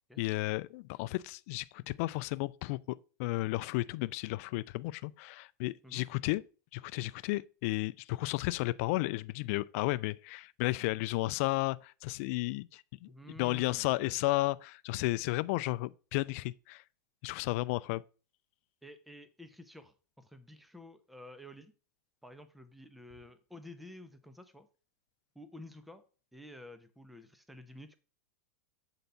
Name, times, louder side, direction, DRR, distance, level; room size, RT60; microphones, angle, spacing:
voice 1, 0.2-6.4 6.7-13.1 13.4-16.8 17.2-18.0, left 20 dB, 55° left, 0.4 m, -33 dB
voice 2, 13.1-14.1 18.8-21.7 22.2-24.7 25.3-26.0 26.3-27.9, left 1 dB, ahead, 0.6 m, -51 dB
8.1 x 4.0 x 5.6 m
supercardioid pair, 130°, 9 cm